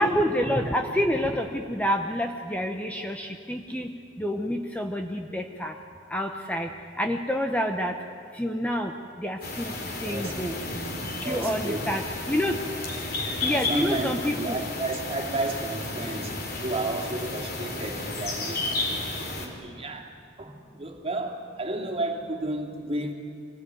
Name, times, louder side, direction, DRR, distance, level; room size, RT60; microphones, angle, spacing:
voice 1, 0.0-5.7 6.1-6.7 7.0-8.0 8.3-8.9 9.2-10.6 11.2-12.6 13.4-14.6, equal, 5° left, 4 dB, 0.9 m, -28 dB
sound 1, 9.4-19.5, left 2 dB, 50° left, 3.7 m, -32 dB
voice 2, 11.2-12.0 12.9-13.0 13.3-19.0 19.4-23.1, right 2 dB, 30° right, 2 dB, 2.6 m, -32 dB
25.0 x 19.0 x 9.5 m, 2.2 s
head